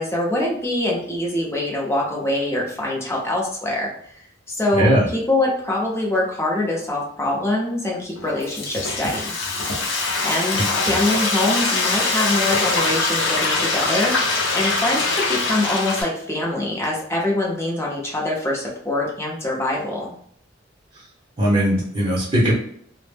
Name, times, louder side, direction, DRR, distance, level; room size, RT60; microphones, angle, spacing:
voice 1, 0.0-3.9 4.5-9.3 10.2-20.1, left 1 dB, 15° left, -3 dB, 0.6 m, -24 dB
Frying (food), 8.1-16.0, left 3 dB, 85° left, 0.6 m, -23 dB
voice 2, 10.5-10.9 21.4-22.5, equal, 30° right, -6 dB, 0.6 m, -19 dB
2.1 x 2.0 x 3.3 m, 0.66 s
head